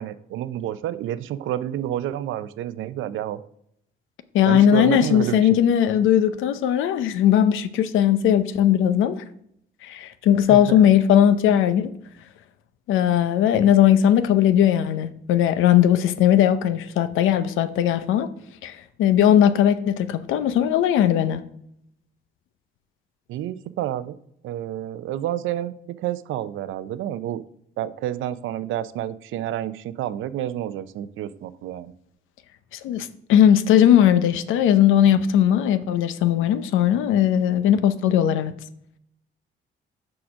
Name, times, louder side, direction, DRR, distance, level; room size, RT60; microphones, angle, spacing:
voice 1, 0.0-3.4 4.4-5.6 10.5-10.8 23.3-24.2 24.4-27.4 27.8-31.9, right 12 dB, 80° right, 0.5 m, -29 dB
voice 2, 4.3-9.2 9.8-11.9 12.9-18.3 18.6-21.4 32.7-38.5, left 10 dB, 85° left, 0.6 m, -18 dB
6.2 x 4.9 x 6.1 m
cardioid pair, 90°, 20 cm